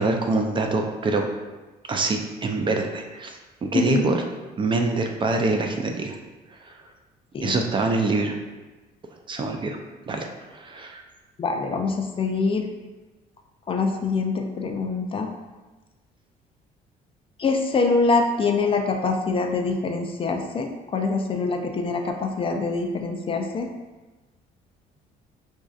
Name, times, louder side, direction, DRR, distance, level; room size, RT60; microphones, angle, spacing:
voice 1, 0.0-1.3 1.9-4.2 4.6-6.2 6.6-6.8 7.4-8.4 9.3-9.8 10.1-10.3 10.5-11.0, right 3 dB, 30° right, 3 dB, 0.4 m, -25 dB
voice 2, 11.4-12.7 13.7-15.3 17.4-23.7, left 4 dB, 35° left, 4 dB, 0.4 m, -24 dB
5.9 x 2.6 x 2.4 m, 1.2 s
cardioid pair, 110°, 17 cm